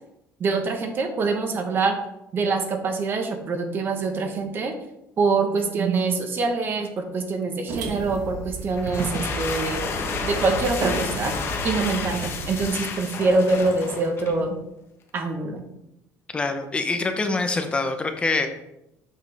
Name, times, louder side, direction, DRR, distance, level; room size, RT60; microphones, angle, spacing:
voice 1, 0.4-2.0 2.3-4.7 5.2-9.8 10.2-11.4 11.6-14.6 15.1-15.6, right 3 dB, 35° right, 5 dB, 1.1 m, -24 dB
sound 1, 7.7-12.7, right 3 dB, 70° right, 1.3 m, -32 dB
sound 2, 8.7-14.5, left 5 dB, 40° left, 1.0 m, -31 dB
voice 2, 16.3-18.5, left 3 dB, 20° left, 7 dB, 0.8 m, -25 dB
7.5 x 5.9 x 3.4 m, 0.85 s
cardioid pair, 140°, 6 cm